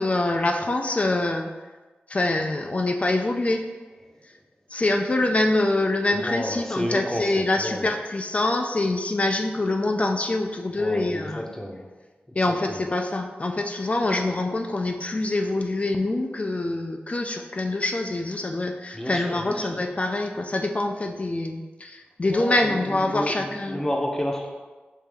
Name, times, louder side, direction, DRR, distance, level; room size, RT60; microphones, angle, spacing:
voice 1, 0.0-1.5 2.1-3.7 4.7-11.4 12.4-23.8, left 2 dB, 35° left, 3 dB, 0.4 m, -25 dB
voice 2, 6.1-7.9 10.8-11.8 18.9-19.8 22.3-24.5, equal, 15° left, 0 dB, 0.7 m, -31 dB
5.3 x 2.7 x 3.4 m, 1.3 s
wide cardioid pair, 75°, 4 cm